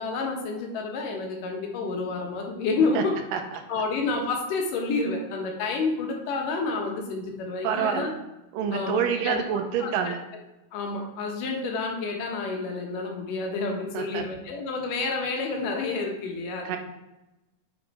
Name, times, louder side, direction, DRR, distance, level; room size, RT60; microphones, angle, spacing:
voice 1, 0.0-3.2 3.7-8.1 8.7-9.4 9.8-10.2 10.7-16.8, left 3 dB, 75° left, 1 dB, 2.8 m, -29 dB
voice 2, 7.6-8.1 8.5-10.2 13.9-14.2 16.7-16.8, right 7 dB, 90° right, 6 dB, 2.4 m, -27 dB
6.4 x 5.2 x 4.7 m, 0.95 s
omnidirectional pair, 3.8 m